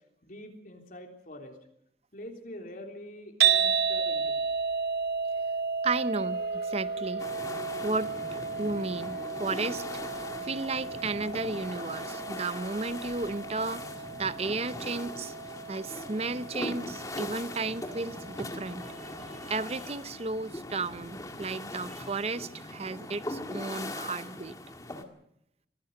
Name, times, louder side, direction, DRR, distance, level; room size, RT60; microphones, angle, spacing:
voice 1, 0.2-1.6 2.1-4.4, left 1 dB, 50° left, 3.4 m, -45 dB
sound 1, 3.4-19.6, right 6 dB, 60° right, 2.1 m, -33 dB
voice 2, 5.8-7.3 7.8-13.8 14.2-15.3 15.7-24.6, right 3 dB, 35° right, 0.7 m, -34 dB
sound 2, 6.1-14.4, left 1 dB, 70° left, 6.1 m, -49 dB
sound 3, 7.2-25.0, left 1 dB, 20° left, 1.9 m, -41 dB
24.5 x 17.5 x 6.6 m
head